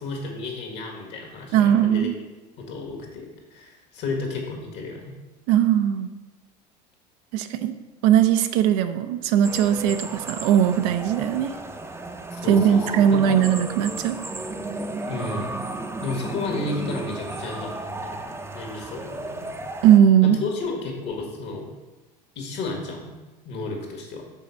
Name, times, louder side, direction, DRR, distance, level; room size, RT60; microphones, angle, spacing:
voice 1, 0.0-2.3 2.6-5.2 12.3-13.4 15.1-15.7 16.0-17.7 18.0-19.5 20.2-21.7 22.3-23.1 23.4-24.2, left 3 dB, 55° left, 1 dB, 1.7 m, -32 dB
voice 2, 1.5-2.2 5.5-6.1 7.3-7.7 8.0-11.5 12.5-14.2 19.8-20.4, right 9 dB, 65° right, 9 dB, 0.5 m, -19 dB
sound 1, 9.4-20.0, right 2 dB, 10° right, 0.6 m, -34 dB
5.5 x 4.0 x 5.5 m, 1.2 s
hypercardioid pair, 85°, 21 cm